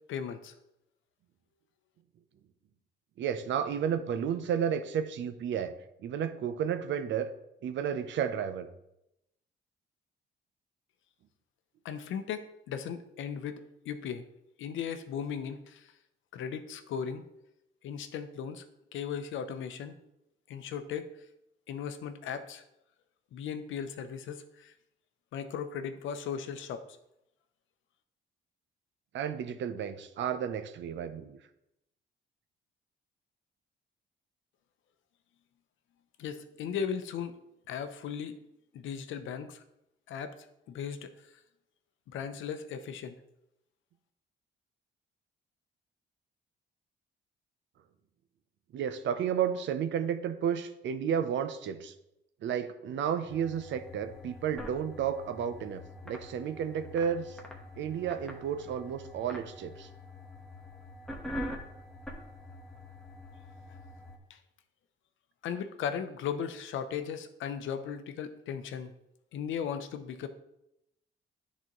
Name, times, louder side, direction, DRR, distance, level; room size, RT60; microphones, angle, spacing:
voice 1, 0.1-0.5 11.8-13.6 13.8-14.3 14.6-15.9 16.3-17.2 17.8-18.6 18.9-20.0 20.5-21.1 21.7-22.6 23.3-24.7 25.3-26.8 36.2-37.3 37.7-38.4 38.7-39.6 40.1-40.3 40.7-41.1 42.1-43.2 64.3-64.4 65.4-68.9 69.3-70.3, left 7 dB, 75° left, 9 dB, 0.7 m, -37 dB
voice 2, 3.2-5.7 6.0-7.3 7.6-8.7 29.1-31.4 48.7-51.9 52.4-57.4 57.8-59.9, right 8 dB, 70° right, 10 dB, 0.6 m, -32 dB
sound 1, 53.3-64.2, left 1 dB, 5° left, 1.2 m, -45 dB
9.8 x 4.1 x 3.1 m, 0.85 s
cardioid pair, 90°, 20 cm